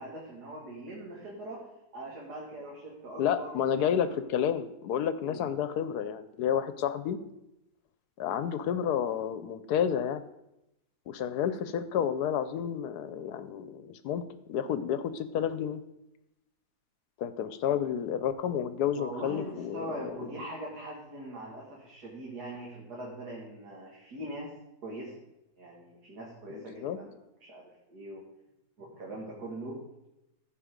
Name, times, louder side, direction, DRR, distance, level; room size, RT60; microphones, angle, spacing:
voice 1, 0.0-1.7 1.9-3.8 5.2-5.4 18.9-24.5 24.8-25.1 25.6-27.1 27.4-27.6 27.9-28.2 28.8-29.8, right 1 dB, 75° right, -3 dB, 2.5 m, -41 dB
voice 2, 3.2-7.2 8.2-10.2 11.1-15.8 17.2-20.1 26.5-27.0, left 9 dB, 75° left, 13 dB, 1.2 m, -30 dB
14.5 x 5.4 x 5.1 m, 0.88 s
omnidirectional pair, 1.7 m